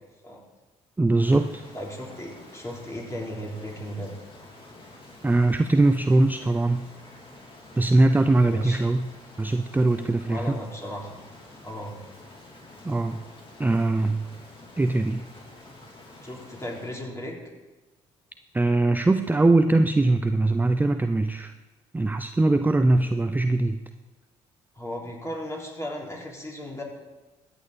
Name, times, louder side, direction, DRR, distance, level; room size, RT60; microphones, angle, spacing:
voice 1, 1.0-1.6 5.2-6.9 7.8-9.1 9.4-10.6 12.8-13.2 13.6-14.3 14.8-15.2 18.5-21.5 21.9-23.8, right 2 dB, 10° right, 9 dB, 0.5 m, -21 dB
Rain, 1.2-17.0, left 2 dB, 35° left, 3.3 m, -48 dB
voice 2, 1.7-4.1 8.4-8.9 10.2-11.2 11.6-12.0 16.2-17.4 22.9-23.0 24.7-26.8, equal, 20° left, -2 dB, 3.8 m, -36 dB
14.5 x 8.9 x 4.3 m, 1.2 s
hypercardioid pair, 55°, 15 cm